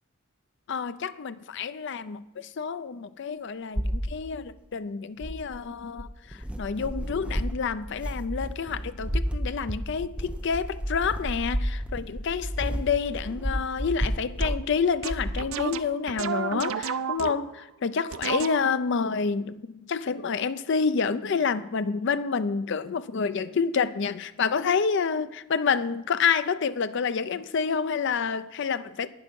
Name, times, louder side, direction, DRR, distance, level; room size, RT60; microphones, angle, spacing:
voice 1, 0.7-6.1 6.6-29.1, left 5 dB, 60° left, 13 dB, 0.5 m, -28 dB
sound 1, 3.8-4.1 5.2-5.6 6.0-14.6 15.1-15.4, equal, 5° right, 0.7 m, -31 dB
sound 2, 14.4-14.6 15.0-17.6 18.1-18.9, right 7 dB, 90° right, 0.4 m, -32 dB
11.5 x 9.4 x 5.3 m, 0.89 s
head